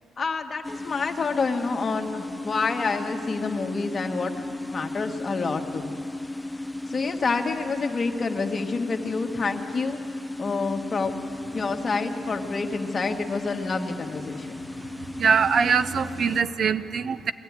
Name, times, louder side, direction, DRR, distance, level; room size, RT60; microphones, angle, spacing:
voice 1, 0.2-6.0 6.9-10.0 10.4-11.2 11.5-14.6, left 4 dB, 35° left, 4 dB, 1.7 m, -28 dB
sound 1, 0.6-16.4, left 2 dB, 5° left, 0.5 m, -35 dB
voice 2, 15.1-17.3, right 6 dB, 55° right, 13 dB, 0.6 m, -23 dB
21.5 x 14.0 x 9.6 m, 2.7 s
cardioid pair, 90°, 0 cm